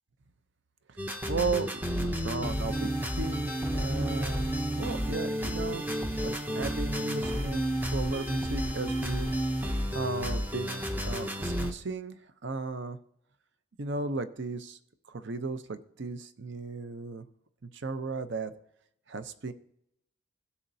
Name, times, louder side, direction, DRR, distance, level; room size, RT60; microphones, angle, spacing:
voice 1, 0.9-4.5 4.8-5.8 6.2-9.3 9.6-13.0 13.8-14.8 15.1-17.2 17.6-18.5 19.1-19.5, right 3 dB, 55° right, 10 dB, 0.6 m, -35 dB
sound 1, 1.0-11.7, equal, 10° right, 0.6 m, -31 dB
17.0 x 7.0 x 2.7 m, 0.75 s
head